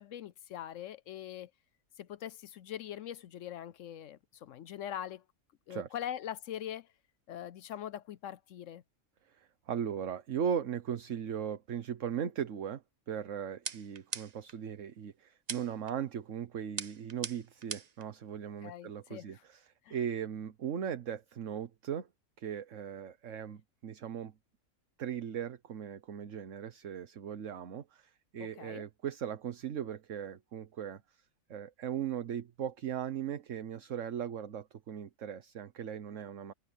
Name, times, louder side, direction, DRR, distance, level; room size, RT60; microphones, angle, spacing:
voice 1, 0.0-1.5 2.0-5.2 5.7-6.9 7.3-8.8 18.6-19.4 19.8-20.0 28.4-28.8, left 10 dB, 70° left, 0.9 m, -42 dB
voice 2, 9.2-22.1 22.4-24.3 25.0-31.2 31.5-36.5, right 8 dB, 65° right, 1.4 m, -38 dB
sound 1, 13.7-14.6 15.5-15.9 16.8-18.0, right 6 dB, 40° right, 0.7 m, -40 dB
omnidirectional pair, 1.5 m